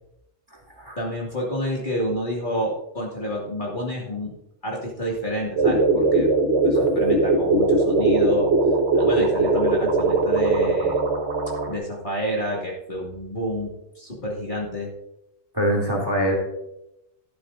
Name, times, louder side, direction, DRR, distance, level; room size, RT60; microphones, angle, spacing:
voice 1, 1.0-4.3 4.6-6.3 6.6-8.5 8.9-11.0 11.7-14.9, equal, 40° left, -3 dB, 2.5 m, -29 dB
sound 1, 5.6-11.7, right 3 dB, 60° right, 1.7 m, -20 dB
voice 2, 15.5-16.4, equal, 20° right, -1 dB, 2.8 m, -23 dB
12.5 x 11.5 x 2.6 m, 0.84 s
omnidirectional pair, 1.3 m